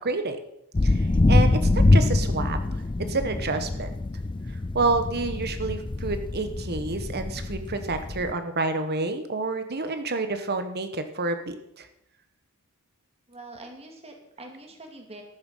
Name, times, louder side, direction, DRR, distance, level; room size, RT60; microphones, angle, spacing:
voice 1, 0.0-0.4 0.8-3.9 4.7-11.9, right 3 dB, 45° right, 9 dB, 1.4 m, -29 dB
sound 1, 0.7-8.3, left 2 dB, 20° left, 0.4 m, -24 dB
voice 2, 13.3-15.2, right 2 dB, 30° right, 3 dB, 2.5 m, -44 dB
14.0 x 11.0 x 5.7 m, 0.82 s
head